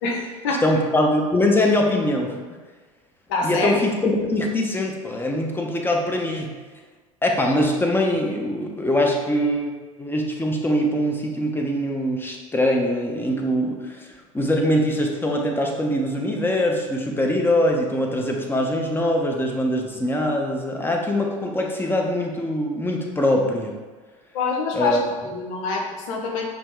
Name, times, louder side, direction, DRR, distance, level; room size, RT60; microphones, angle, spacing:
voice 1, 0.0-0.6 3.3-3.8 24.3-26.4, left 4 dB, 65° left, 0 dB, 0.9 m, -25 dB
voice 2, 0.6-2.4 3.4-6.5 7.2-9.7 10.0-23.7 24.7-25.0, left 1 dB, 10° left, 1 dB, 0.8 m, -22 dB
5.0 x 2.9 x 3.5 m, 1.4 s
hypercardioid pair, 75°, 17 cm